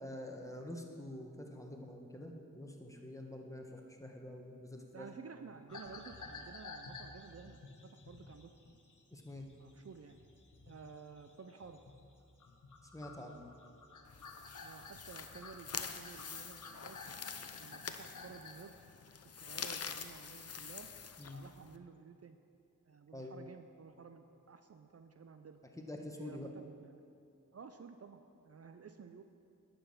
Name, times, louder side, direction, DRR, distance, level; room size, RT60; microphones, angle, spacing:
voice 1, 0.0-5.1 9.1-9.5 12.8-13.4 21.2-21.4 23.1-23.5 25.8-26.5, left 1 dB, 10° left, 2 dB, 1.4 m, -47 dB
voice 2, 4.9-8.5 9.6-10.2 10.7-11.8 14.6-17.0 17.5-18.7 19.4-20.9 21.3-22.4 22.9-25.6 26.2-27.0 27.5-29.2, right 5 dB, 45° right, 7 dB, 0.5 m, -53 dB
sound 1, 5.7-12.1 12.4-18.7, left 3 dB, 65° left, 1.2 m, -52 dB
sound 2, 14.0-21.8, left 6 dB, 45° left, 0.6 m, -46 dB
10.0 x 7.0 x 5.7 m, 2.5 s
cardioid pair, 45°, 33 cm